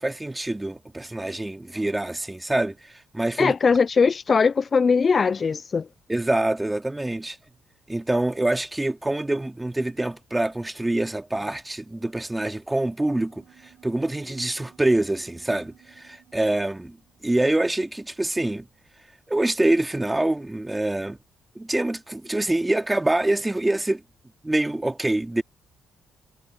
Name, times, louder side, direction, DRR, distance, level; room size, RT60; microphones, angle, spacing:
voice 1, 0.0-3.5 6.1-7.4 7.9-13.4 13.8-17.0 17.2-18.7 19.3-21.2 21.6-24.0 24.4-25.4, right 1 dB, 10° right, 2.3 m, -25 dB
voice 2, 3.4-5.9, left 5 dB, 40° left, 0.3 m, -20 dB
sound 1, 13.0-18.9, right 11 dB, 75° right, 6.9 m, -58 dB
cardioid pair, 90°, 0 cm